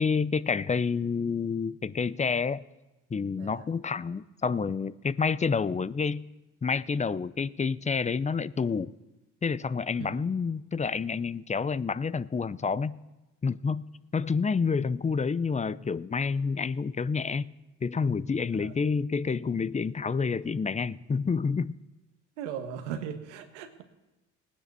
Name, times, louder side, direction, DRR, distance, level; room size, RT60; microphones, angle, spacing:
voice 1, 0.0-2.6 3.1-6.2 6.6-8.9 9.4-12.9 13.4-13.8 14.1-17.5 17.8-21.7, left 5 dB, 20° left, 17 dB, 0.6 m, -28 dB
voice 2, 22.4-23.8, right 8 dB, 90° right, 7 dB, 1.4 m, -38 dB
18.5 x 10.0 x 6.8 m, 1.0 s
hypercardioid pair, 65°, 34 cm